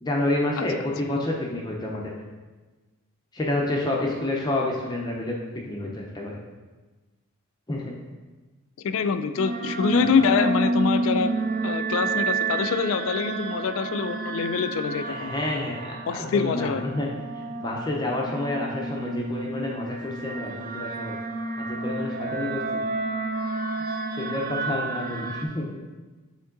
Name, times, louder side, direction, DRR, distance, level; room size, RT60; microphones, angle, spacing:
voice 1, 0.0-2.1 3.3-5.3 5.6-6.4 7.7-7.9 9.9-10.0 15.1-17.1 17.4-21.2 21.6-22.8 24.2-25.7, left 1 dB, 20° left, -1 dB, 0.6 m, -29 dB
voice 2, 8.8-11.3 11.6-15.3 16.1-16.8, left 5 dB, 65° left, 12 dB, 0.3 m, -25 dB
sound 1, 9.4-25.5, right 3 dB, 40° right, 0.3 m, -30 dB
7.0 x 3.7 x 3.8 m, 1.3 s
head